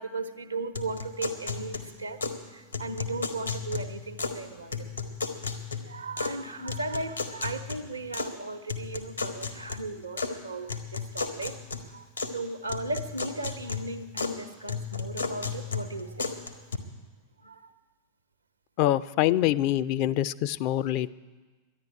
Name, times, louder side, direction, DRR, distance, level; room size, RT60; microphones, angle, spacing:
voice 1, 0.0-11.6 11.9-12.0 12.3-16.4 17.4-17.7, right 2 dB, 80° right, 9 dB, 0.8 m, -37 dB
sound 1, 0.8-2.4 2.7-4.4 4.7-6.4 6.7-8.3 8.7-10.3 10.7-12.4 12.7-14.4 14.7-16.8, left 5 dB, 80° left, 1.3 m, -34 dB
voice 2, 18.8-21.1, left 13 dB, 45° left, 16 dB, 0.4 m, -25 dB
11.5 x 10.5 x 9.6 m, 1.3 s
figure-of-eight pair, 90°, 0 cm